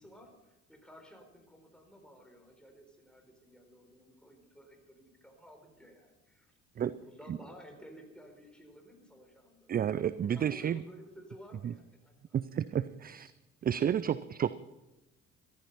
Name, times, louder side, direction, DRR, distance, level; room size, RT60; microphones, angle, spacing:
voice 1, 0.0-6.5 6.8-9.7 10.2-12.7, equal, ahead, 3 dB, 4.4 m, -55 dB
voice 2, 9.7-10.8 12.3-13.3 13.6-14.6, right 9 dB, 25° right, 16 dB, 0.4 m, -31 dB
14.0 x 13.5 x 5.6 m, 0.99 s
figure-of-eight pair, 55°, 39 cm